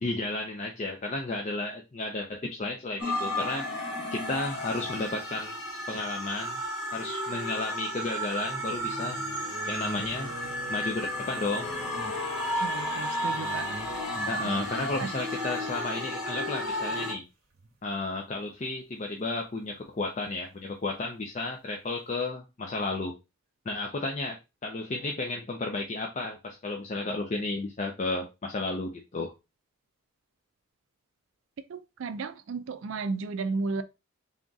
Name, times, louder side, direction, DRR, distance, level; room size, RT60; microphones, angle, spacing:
voice 1, 0.0-3.7 4.1-5.6 5.9-6.6 6.9-9.2 9.7-10.3 10.7-11.7 14.2-17.2 17.8-23.2 23.7-29.3, left 2 dB, 35° left, 0.4 m, -33 dB
sound 1, 3.0-17.1, equal, 90° left, 1.5 m, -33 dB
sound 2, 5.9-6.0 8.2-15.9 17.1-17.2 17.5-17.7, right 1 dB, 45° right, 1.1 m, -44 dB
voice 2, 12.6-13.7 14.7-15.1 31.7-33.8, right 4 dB, 60° right, 0.4 m, -34 dB
3.5 x 2.4 x 3.9 m
head